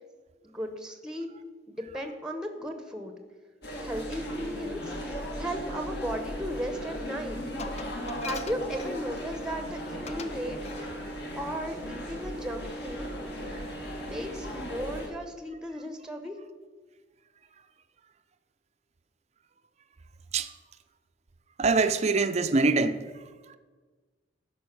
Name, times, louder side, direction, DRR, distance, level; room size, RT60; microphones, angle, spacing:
voice 1, 0.4-1.3 1.7-3.1 3.8-7.4 8.2-10.9 11.4-13.1 14.0-16.3, equal, 5° right, 0.8 m, -36 dB
sound 1, 3.6-15.1, equal, 60° left, 2.2 m, -37 dB
Glass, 7.6-9.4 10.1-10.4 10.6-10.9, left 5 dB, 35° left, 0.5 m, -42 dB
voice 2, 21.6-23.6, right 3 dB, 35° right, 0.5 m, -25 dB
12.5 x 5.3 x 6.0 m
head